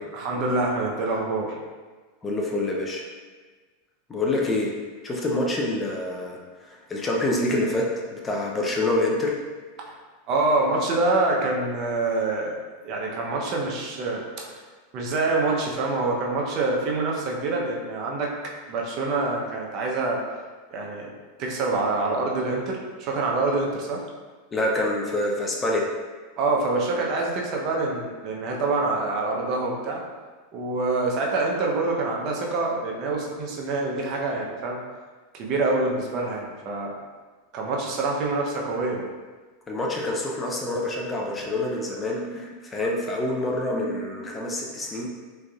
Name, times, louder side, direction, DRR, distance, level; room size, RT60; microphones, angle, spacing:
voice 1, 0.1-1.6 9.9-10.0 10.3-12.5 12.8-14.5 14.9-18.3 18.7-20.2 20.7-21.1 21.4-24.0 26.4-30.0 30.5-34.8 35.3-36.9 37.5-39.1, right 3 dB, 45° right, -1 dB, 0.7 m, -26 dB
voice 2, 2.2-3.0 4.1-4.7 5.0-9.4 24.5-25.9 39.7-45.1, left 1 dB, 20° left, -1 dB, 0.5 m, -26 dB
3.7 x 3.3 x 2.3 m, 1.4 s
hypercardioid pair, 115°, 0 cm